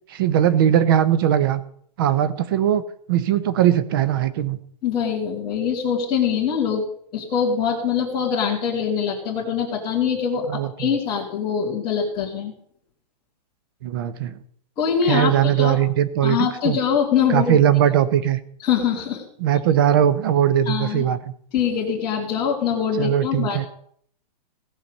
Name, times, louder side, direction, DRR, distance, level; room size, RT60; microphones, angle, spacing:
voice 1, 0.1-1.6 2.0-2.8 3.1-4.6 10.5-10.9 13.8-14.3 15.1-16.4 16.6-16.8 17.3-18.4 19.4-21.2 23.0-23.6, right 10 dB, 30° right, 15 dB, 0.7 m, -19 dB
voice 2, 4.8-6.8 7.1-12.5 14.8-15.8 16.2-17.6 18.6-19.2 20.7-21.1 21.5-23.7, left 7 dB, 20° left, -7 dB, 2.4 m, -23 dB
17.0 x 5.8 x 6.6 m, 0.63 s
hypercardioid pair, 170°, 21 cm